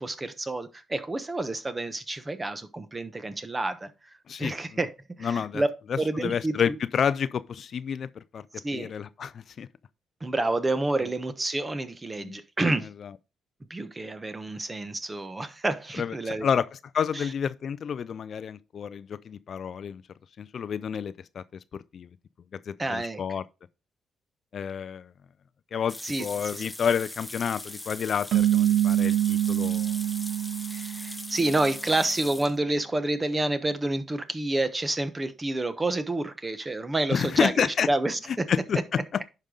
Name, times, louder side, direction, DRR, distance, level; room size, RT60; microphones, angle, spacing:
voice 1, 0.0-3.9 4.4-4.9 5.2-5.7 6.0-6.8 8.6-8.9 10.2-12.9 13.7-16.5 17.1-17.3 22.8-23.2 26.0-26.3 26.5-26.6 30.7-38.5, right 2 dB, 20° right, 1.1 m, -29 dB
voice 2, 5.2-5.6 5.9-8.4 8.7-9.7 12.2-12.4 13.0-13.1 16.0-16.7 16.9-20.0 20.4-21.4 21.9-22.1 22.7-23.4 24.5-25.1 25.7-30.0 37.1-37.9 38.3-39.0, left 7 dB, 55° left, 0.4 m, -29 dB
sound 1, 25.9-32.6, left 1 dB, 10° left, 0.7 m, -40 dB
sound 2, 28.3-31.6, right 12 dB, 75° right, 0.3 m, -25 dB
10.5 x 5.2 x 3.9 m
cardioid pair, 90°, 0 cm